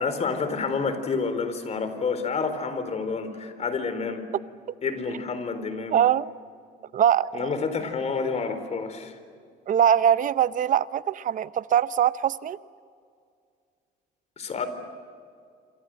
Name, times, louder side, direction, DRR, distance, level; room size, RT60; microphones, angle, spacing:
voice 1, 0.0-4.2 4.8-6.0 7.3-9.2 14.4-14.7, left 5 dB, 40° left, 10 dB, 4.1 m, -29 dB
voice 2, 5.9-6.3 6.9-7.3 9.7-12.6, right 9 dB, 50° right, 16 dB, 0.8 m, -22 dB
27.5 x 27.0 x 7.8 m, 2.2 s
cardioid pair, 110°, 17 cm